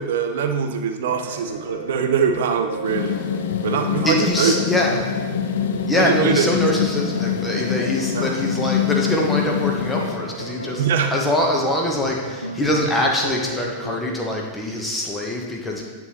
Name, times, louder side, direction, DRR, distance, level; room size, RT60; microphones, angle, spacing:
voice 1, 0.0-3.2 3.6-4.7 6.0-6.5 8.1-8.3 10.8-11.1, right 6 dB, 60° right, 6 dB, 0.6 m, -22 dB
sound 1, 1.1-14.0, right 1 dB, 90° right, 0.7 m, -33 dB
sound 2, 2.8-10.2, left 11 dB, 55° left, 0.3 m, -25 dB
voice 2, 4.0-5.3 5.9-15.8, left 1 dB, 10° left, -1 dB, 0.9 m, -23 dB
9.5 x 3.8 x 2.9 m, 1.4 s
figure-of-eight pair, 90°, 0 cm